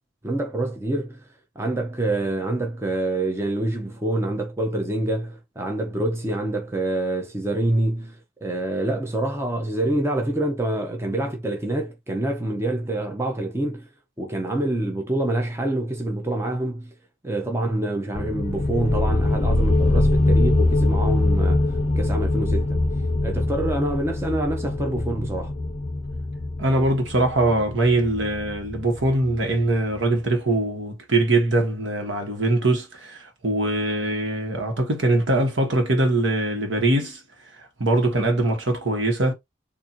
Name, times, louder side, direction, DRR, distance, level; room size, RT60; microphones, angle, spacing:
voice 1, 0.2-1.3 1.6-13.9 14.2-16.9 17.2-22.8 23.2-25.5, right 1 dB, 15° right, 0.7 m, -26 dB
sound 1, 18.1-29.6, left 2 dB, 35° left, 0.5 m, -23 dB
voice 2, 26.6-37.2 37.8-39.3, right 2 dB, 70° right, 1.3 m, -22 dB
4.1 x 2.6 x 2.9 m
head